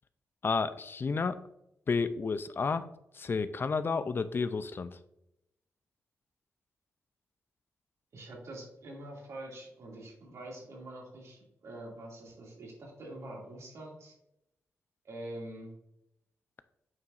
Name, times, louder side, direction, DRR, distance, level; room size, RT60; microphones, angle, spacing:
voice 1, 0.4-1.4 1.9-2.9 3.1-5.0, left 4 dB, 45° left, 13 dB, 0.4 m, -31 dB
voice 2, 8.1-14.1 15.0-15.7, right 1 dB, 65° right, -2 dB, 2.4 m, -45 dB
8.4 x 4.7 x 2.5 m, 0.83 s
cardioid pair, 65°, 5 cm